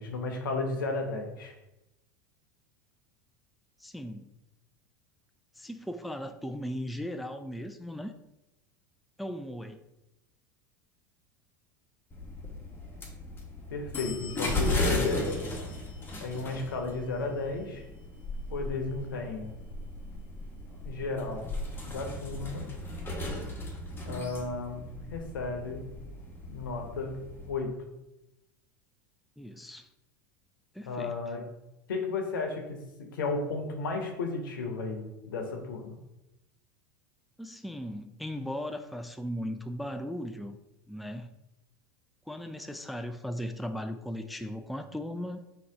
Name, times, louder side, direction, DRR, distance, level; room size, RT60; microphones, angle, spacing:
voice 1, 0.0-1.5 13.7-15.5 16.2-17.8 18.5-19.5 20.8-21.4 21.9-22.7 24.0-25.8 26.5-27.2 27.5-27.7 30.9-31.4 31.9-36.0, left 3 dB, 80° left, 3 dB, 1.0 m, -34 dB
voice 2, 3.8-4.3 5.6-8.1 9.2-9.8 29.4-29.9 30.7-31.3 37.4-40.6 40.9-41.3 42.3-45.5, equal, ahead, 7 dB, 0.3 m, -37 dB
sound 1, 12.1-27.5, left 2 dB, 20° left, 1.1 m, -36 dB
3.9 x 2.8 x 4.6 m, 0.92 s
hypercardioid pair, 90°, 11 cm